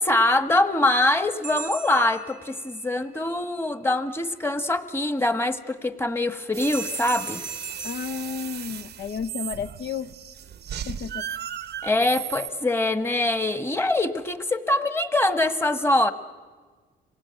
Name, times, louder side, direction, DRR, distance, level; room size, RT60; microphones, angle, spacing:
voice 1, 0.0-7.4 11.8-16.1, left 2 dB, 10° left, 11 dB, 1.4 m, -23 dB
sound 1, 1.4-3.0 6.6-9.1, right 5 dB, 5° right, 0.9 m, -38 dB
sound 2, 6.5-12.5, right 10 dB, 55° right, 0.8 m, -36 dB
voice 2, 7.8-10.1 10.9-11.3, left 6 dB, 65° left, 12 dB, 1.0 m, -32 dB
26.0 x 18.5 x 9.0 m, 1.4 s
cardioid pair, 90°, 20 cm